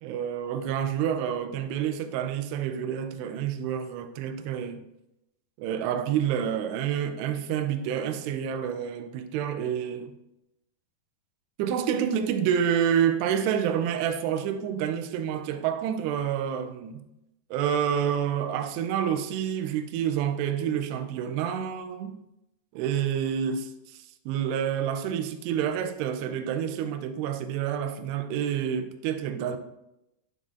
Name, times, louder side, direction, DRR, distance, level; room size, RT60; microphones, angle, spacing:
voice 1, 0.0-4.9 5.6-10.1 11.6-17.0 17.5-22.2 22.7-29.6, right 9 dB, 85° right, 2.7 m, -28 dB
8.9 x 6.6 x 2.4 m
omnidirectional pair, 4.9 m